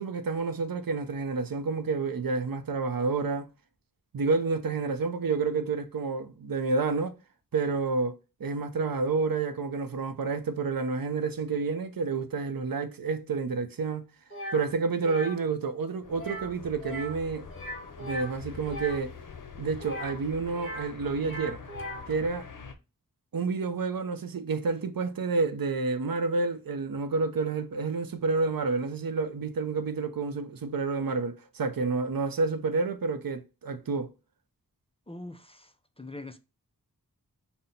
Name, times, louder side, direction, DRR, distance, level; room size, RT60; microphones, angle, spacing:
voice 1, 0.0-3.5 4.1-7.1 7.5-8.1 8.4-14.1 14.5-17.5 18.0-19.1 19.6-21.6 22.1-22.5 23.3-34.1, right 4 dB, 70° right, 0.6 m, -29 dB
sound 1, 14.3-14.6 15.0-15.4 16.1-16.5 16.8-17.2 17.5-19.0 19.8-20.9 21.2-22.1, equal, 35° left, 1.7 m, -39 dB
sound 2, 16.0-22.7, left 5 dB, 60° left, 0.7 m, -45 dB
voice 2, 35.1-36.4, left 2 dB, 15° left, 0.4 m, -43 dB
5.7 x 2.1 x 4.0 m
wide cardioid pair, 60°, 36 cm